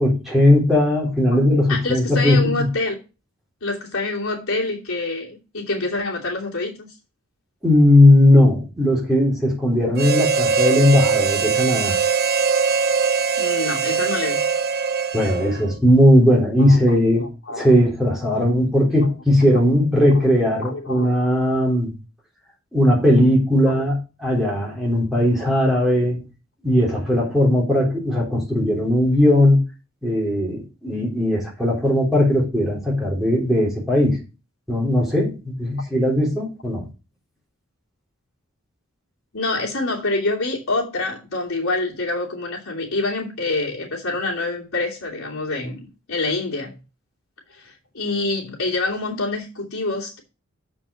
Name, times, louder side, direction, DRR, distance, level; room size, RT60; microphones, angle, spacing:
voice 1, 0.0-2.5 7.6-12.0 15.1-17.3 17.5-21.9 22.7-26.2 26.6-29.6 30.0-34.2 34.7-36.9, left 1 dB, ahead, 3.5 m, -18 dB
voice 2, 1.7-3.0 3.6-6.9 13.4-14.4 16.6-17.0 17.5-17.7 18.3-18.5 20.6-21.1 23.7-23.8 39.3-45.8 46.1-46.8 47.5-50.2, left 2 dB, 85° left, 2.9 m, -26 dB
Harmonica, 10.0-15.7, right 5 dB, 50° right, 0.7 m, -21 dB
7.2 x 5.1 x 6.3 m
head